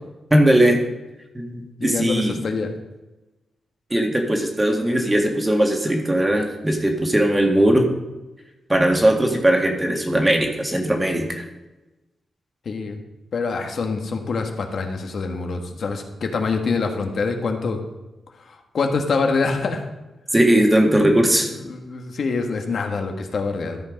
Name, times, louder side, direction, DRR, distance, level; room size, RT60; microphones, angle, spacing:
voice 1, 0.3-0.8 1.3-2.4 3.9-7.9 8.7-11.4 20.3-21.5, right 1 dB, 15° right, 2 dB, 1.8 m, -19 dB
voice 2, 1.8-2.7 12.6-13.0 13.3-17.8 18.5-19.8 21.7-23.8, left 4 dB, 60° left, 4 dB, 1.4 m, -25 dB
13.0 x 5.5 x 5.1 m, 1.1 s
cardioid pair, 85°, 0 cm